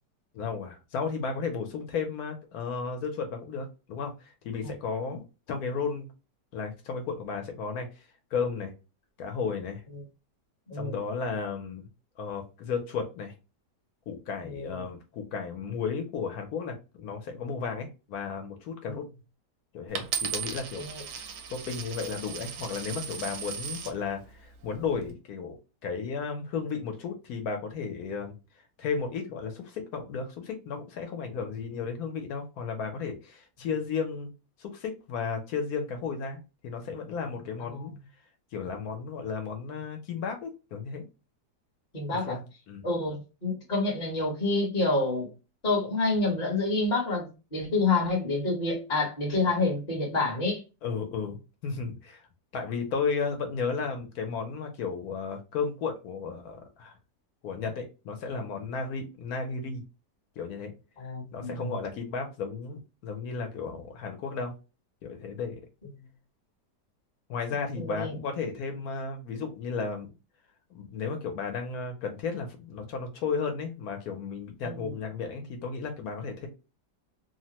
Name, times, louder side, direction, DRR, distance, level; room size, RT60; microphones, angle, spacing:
voice 1, 0.3-6.1 6.5-7.9 8.3-8.7 9.2-9.8 10.7-11.8 12.2-13.3 14.1-19.1 19.7-20.8 21.5-25.6 25.8-28.3 28.8-34.3 34.6-37.9 38.5-41.0 42.3-42.4 42.7-42.8 50.8-52.2 52.5-56.9 57.4-59.8 60.4-60.7 61.3-64.5 65.0-65.6 67.3-70.1 70.7-76.5, left 5 dB, 70° left, 1.1 m, -34 dB
voice 2, 10.7-11.0 14.4-14.7 18.9-19.0 20.8-21.0 41.9-42.4 42.8-45.3 45.6-50.6 61.0-61.8 67.8-68.1 74.6-74.9, left 3 dB, 30° left, 1.0 m, -28 dB
Coin (dropping), 20.0-24.0 24.7-25.1, right 7 dB, 85° right, 1.2 m, -36 dB
3.2 x 2.1 x 2.8 m
omnidirectional pair, 1.8 m